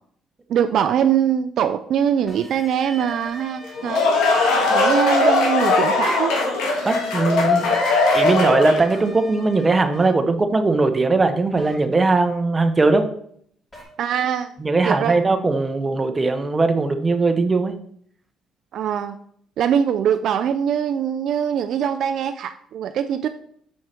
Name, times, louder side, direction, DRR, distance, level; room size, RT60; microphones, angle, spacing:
voice 1, 0.5-4.0 4.7-6.4 14.0-14.5 14.8-15.2 18.7-19.2 19.6-23.3, right 9 dB, 65° right, 10 dB, 0.3 m, -22 dB
sound 1, 2.3-4.6 7.3-10.1 11.6-11.7 13.7-13.8, equal, 20° left, 2.8 m, -40 dB
sound 2, 3.6-9.0, left 3 dB, 85° left, 1.6 m, -19 dB
voice 2, 6.8-7.7 8.1-13.1 14.6-17.7, right 3 dB, 25° right, 8 dB, 0.8 m, -19 dB
6.4 x 4.6 x 4.3 m, 0.65 s
cardioid pair, 85°, 0 cm